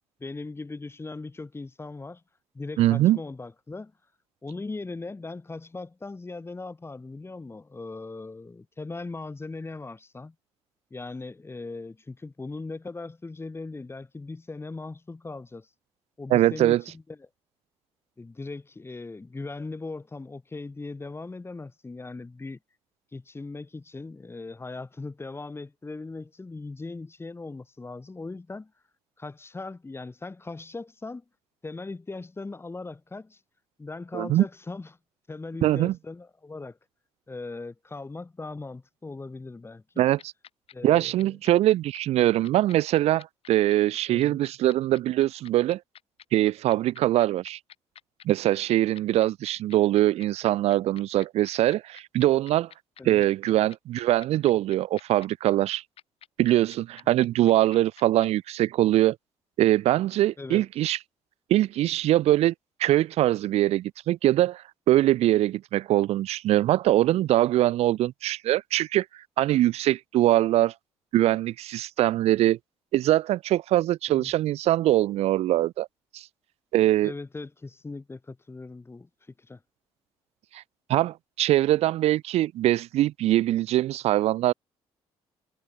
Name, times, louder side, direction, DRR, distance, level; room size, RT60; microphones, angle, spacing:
voice 1, 0.2-2.2 2.5-3.9 4.4-10.3 10.9-15.7 16.2-17.3 18.2-22.6 23.1-28.7 29.2-31.2 31.6-33.4 33.8-34.9 35.3-36.8 37.3-40.0 40.7-41.4 44.1-44.4 53.0-53.2 57.3-57.5 60.4-60.7 74.1-74.3 77.0-79.1 79.4-79.6, left 3 dB, 20° left, 3.2 m, -39 dB
voice 2, 2.8-3.2 16.3-16.8 34.1-34.4 35.6-35.9 40.0-40.2 40.8-45.8 46.3-47.6 48.2-52.7 53.0-55.8 56.4-59.2 59.6-61.0 61.5-62.5 62.8-69.1 69.4-70.7 71.1-72.6 72.9-75.9 76.1-76.3 76.7-77.1 80.5-80.6 80.9-84.5, right 14 dB, 65° right, 0.4 m, -22 dB
sound 1, 40.0-58.3, left 9 dB, 60° left, 3.2 m, -48 dB
supercardioid pair, 80°, 12 cm